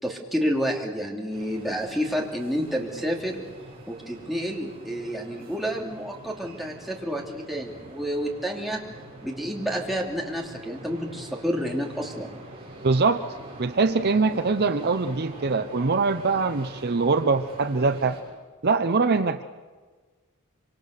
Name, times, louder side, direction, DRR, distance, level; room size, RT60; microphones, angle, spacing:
voice 1, 0.0-3.4 3.9-8.8 9.2-12.3, equal, ahead, -1 dB, 2.9 m, -29 dB
sound 1, 1.3-18.2, right 1 dB, 25° right, 7.4 m, -44 dB
voice 2, 12.8-13.3 13.6-18.2 18.6-19.4, right 4 dB, 45° right, 10 dB, 0.7 m, -23 dB
25.5 x 25.5 x 6.6 m, 1.4 s
head